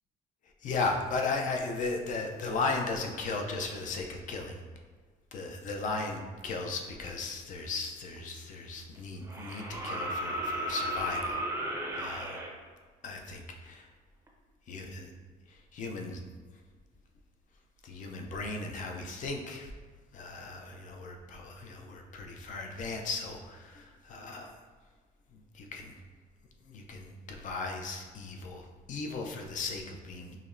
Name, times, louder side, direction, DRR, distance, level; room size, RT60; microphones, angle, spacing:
voice 1, 0.6-4.6 5.3-12.4 13.0-13.9 14.7-15.1 15.5-16.2 17.8-19.7 20.1-24.5 25.3-25.9 26.6-30.4, left 3 dB, 50° left, 2 dB, 0.5 m, -36 dB
sound 1, 8.2-8.3 9.3-12.5 14.3-14.4, equal, 15° right, 0.5 m, -34 dB
5.0 x 2.1 x 2.5 m, 1.5 s
cardioid pair, 110°, 17 cm